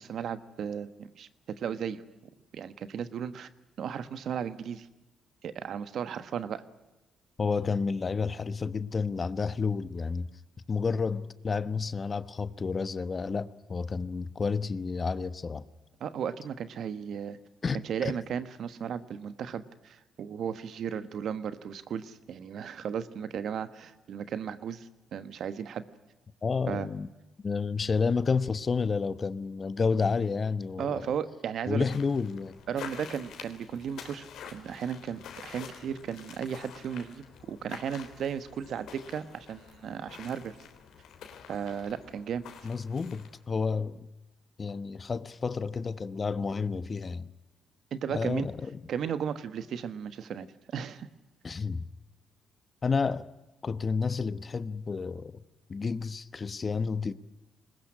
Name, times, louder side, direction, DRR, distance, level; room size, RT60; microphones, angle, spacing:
voice 1, 0.0-2.0 2.5-3.5 3.8-4.9 5.4-6.6 16.0-17.4 17.8-25.8 26.7-26.9 30.8-31.8 32.7-40.6 41.5-42.4 47.9-48.5 48.9-50.5 50.7-51.1, right 8 dB, 65° right, 1.4 m, -35 dB
voice 2, 7.4-10.3 10.7-15.6 17.6-17.8 26.4-27.1 27.4-31.1 31.7-32.6 42.6-44.1 44.6-47.3 48.1-48.8 51.4-51.9 52.8-53.3 53.6-55.4 55.7-57.1, left 5 dB, 35° left, 1.0 m, -30 dB
sound 1, 31.8-43.4, left 7 dB, 80° left, 3.5 m, -48 dB
21.5 x 20.0 x 9.8 m
cardioid pair, 90°, 0 cm